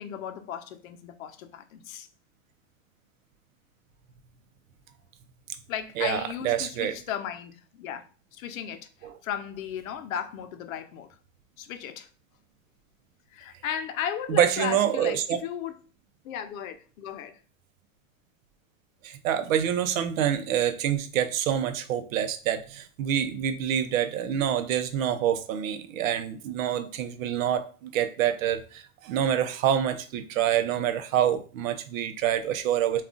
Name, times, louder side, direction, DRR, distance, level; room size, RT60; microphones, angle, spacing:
voice 1, 0.0-2.1 5.7-8.1 8.3-8.9 9.2-11.1 11.6-12.1 13.3-15.7 16.2-17.4, left 9 dB, 90° left, 0.6 m, -35 dB
voice 2, 6.0-6.9 14.3-15.4 19.0-33.0, right 10 dB, 80° right, 0.6 m, -26 dB
2.4 x 2.3 x 3.6 m
supercardioid pair, 150°, 39 cm